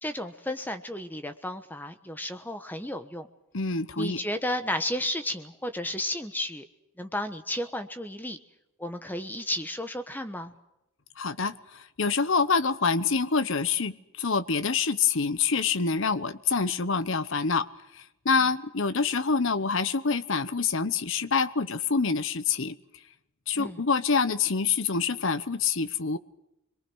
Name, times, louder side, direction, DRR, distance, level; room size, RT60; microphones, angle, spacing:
voice 1, 0.0-3.3 4.0-6.6 7.0-8.4 8.8-10.5 23.5-23.8, left 1 dB, 10° left, 8 dB, 1.1 m, -33 dB
voice 2, 3.5-4.2 11.2-17.7 17.9-22.8 23.5-26.2, left 5 dB, 60° left, 13 dB, 0.9 m, -26 dB
27.0 x 22.5 x 6.3 m, 0.88 s
head